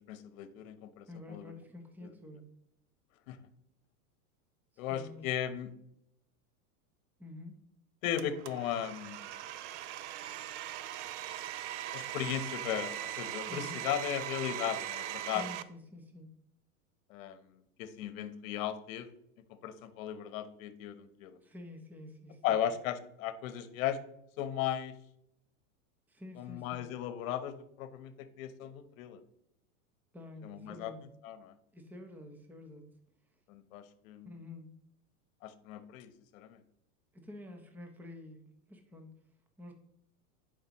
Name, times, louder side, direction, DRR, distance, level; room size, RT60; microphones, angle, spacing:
voice 1, 0.1-1.5 2.0-2.1 3.3-3.4 4.8-5.7 8.0-9.3 11.9-15.4 17.1-19.1 19.5-21.4 22.4-24.0 24.4-24.9 26.4-29.2 30.4-30.9 31.2-31.5 33.5-34.3 35.4-36.6, left 10 dB, 60° left, 12 dB, 1.0 m, -37 dB
voice 2, 1.1-2.4 4.7-5.3 7.2-7.6 13.4-13.8 15.2-16.3 21.4-22.6 26.1-26.8 30.1-31.0 31.7-32.8 34.3-34.8 37.1-38.4 38.7-39.2 39.6-39.7, left 2 dB, 5° right, 5 dB, 0.7 m, -48 dB
Domestic sounds home sounds, 8.2-15.6, right 12 dB, 50° right, 0.5 m, -40 dB
11.0 x 5.2 x 3.0 m, 0.76 s
hypercardioid pair, 130°, 45 cm